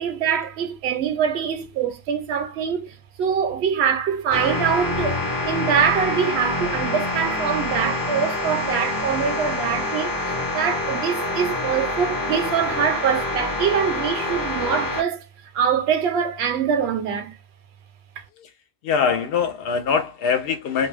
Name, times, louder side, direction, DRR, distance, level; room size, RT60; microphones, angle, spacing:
voice 1, 0.0-15.3 15.5-17.3, right 7 dB, 75° right, 0.9 m, -24 dB
sound 1, 4.3-15.0, left 2 dB, 25° left, 0.7 m, -26 dB
voice 2, 18.8-20.9, left 6 dB, 70° left, 0.7 m, -23 dB
2.5 x 2.2 x 3.2 m
omnidirectional pair, 1.1 m